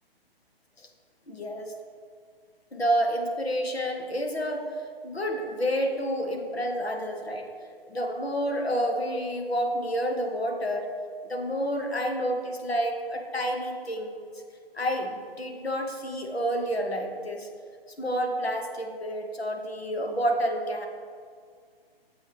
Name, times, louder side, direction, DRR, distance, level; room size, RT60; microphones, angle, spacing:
voice 1, 1.3-1.7 2.7-7.5 7.8-10.9 11.3-14.3 14.7-17.5 18.0-20.9, equal, 85° left, 3 dB, 1.3 m, -29 dB
8.6 x 7.7 x 3.4 m, 2.1 s
figure-of-eight pair, 130°, 30 cm